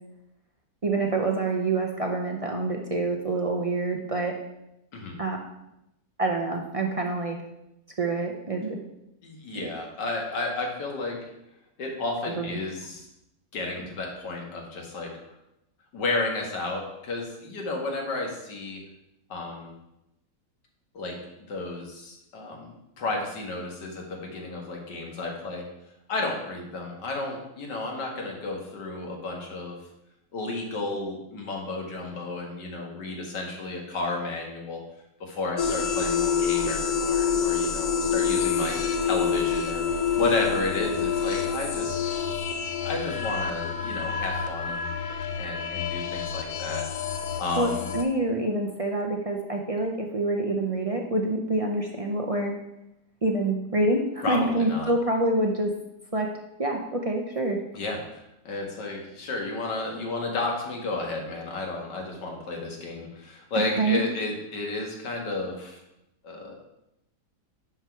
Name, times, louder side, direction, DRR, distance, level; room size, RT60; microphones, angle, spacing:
voice 1, 0.8-4.4 5.2-5.4 6.2-7.4 8.0-8.8 9.5-9.7 12.2-12.6 47.6-52.5 53.2-55.7 56.1-56.3 56.6-57.6 63.5-64.0, right 2 dB, 50° right, 1 dB, 0.4 m, -26 dB
voice 2, 9.2-11.3 11.8-13.1 13.5-15.1 15.9-18.8 19.3-19.7 20.9-21.2 21.5-25.7 26.1-29.8 30.3-34.8 35.2-38.8 39.0-42.0 42.8-44.9 45.4-46.8 47.4-47.8 54.2-54.9 57.7-65.8 66.2-66.5, left 3 dB, 85° left, 1 dB, 2.2 m, -32 dB
sound 1, 35.6-48.0, left 6 dB, 65° left, 1.3 m, -27 dB
11.0 x 4.5 x 4.5 m, 0.87 s
omnidirectional pair, 1.8 m